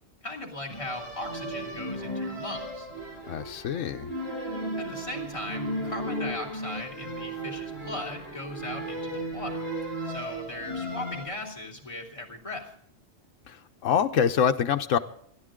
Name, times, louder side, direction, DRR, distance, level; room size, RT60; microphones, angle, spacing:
voice 1, 0.2-2.9 4.8-9.6 10.0-12.7, left 1 dB, 25° left, -1 dB, 3.3 m, -38 dB
sound 1, 0.7-11.3, right 1 dB, 60° right, 6.5 m, -35 dB
voice 2, 3.3-4.1 13.5-13.6 13.8-15.0, left 7 dB, 85° left, 6 dB, 1.1 m, -25 dB
28.5 x 10.5 x 3.7 m, 0.63 s
omnidirectional pair, 1.3 m